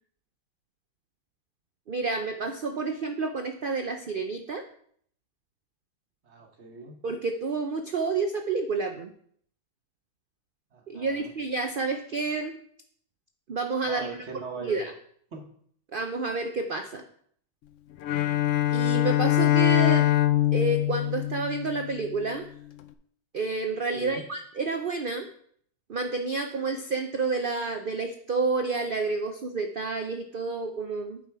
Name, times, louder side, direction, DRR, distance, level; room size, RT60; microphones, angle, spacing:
voice 1, 1.9-4.6 7.0-9.1 10.9-12.6 13.5-14.2 14.6-14.9 15.9-17.0 18.7-20.1 20.5-22.4 23.3-25.3 25.9-31.2, right 3 dB, 80° right, 6 dB, 0.4 m, -29 dB
voice 2, 6.2-7.0 10.7-11.3 13.8-14.9 15.3-15.5 23.9-24.2, right 4 dB, 45° right, 3 dB, 1.4 m, -40 dB
Bowed string instrument, 18.0-22.2, left 13 dB, 65° left, 0.7 m, -23 dB
8.6 x 5.7 x 4.6 m, 0.62 s
omnidirectional pair, 1.8 m